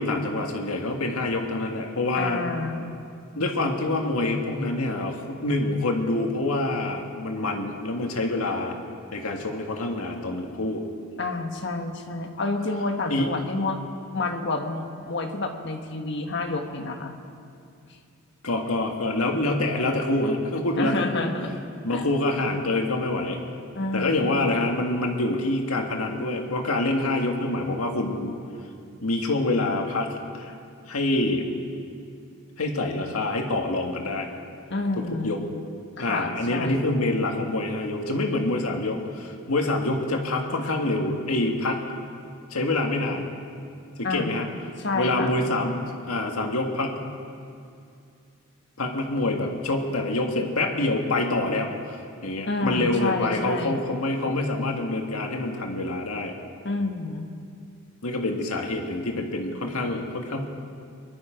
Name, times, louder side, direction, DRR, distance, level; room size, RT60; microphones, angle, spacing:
voice 1, 0.0-2.4 3.3-8.8 9.1-10.8 13.1-13.3 18.4-21.3 21.8-23.4 23.9-28.3 29.0-30.5 30.9-31.5 32.6-34.3 35.0-35.4 36.0-41.8 42.5-43.3 44.0-44.5 44.9-47.0 48.8-56.4 58.0-60.5, left 2 dB, 90° left, 2 dB, 1.8 m, -26 dB
voice 2, 2.1-3.0 11.2-13.8 14.1-17.1 20.8-21.5 21.9-22.0 23.7-24.5 34.7-35.4 36.0-36.8 44.0-44.3 44.8-45.3 52.5-53.8 56.6-57.3, left 3 dB, 55° left, 4 dB, 1.3 m, -29 dB
23.5 x 11.5 x 5.1 m, 2.4 s
head